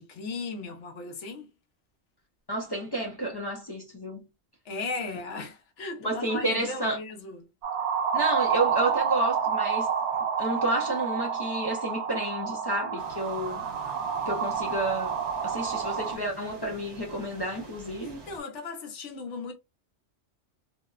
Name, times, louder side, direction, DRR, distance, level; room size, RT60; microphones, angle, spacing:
voice 1, 0.0-1.5 4.6-7.5 13.4-14.7 18.0-19.5, left 3 dB, 85° left, 1.1 m, -37 dB
voice 2, 2.5-4.3 6.0-7.0 8.1-9.9 10.4-13.6 14.3-15.2 15.4-18.2, right 1 dB, 35° left, 0.4 m, -30 dB
sound 1, 7.6-16.2, right 7 dB, 80° right, 0.9 m, -29 dB
sound 2, 13.0-18.4, right 3 dB, 30° right, 0.5 m, -47 dB
2.7 x 2.0 x 2.3 m
omnidirectional pair, 1.2 m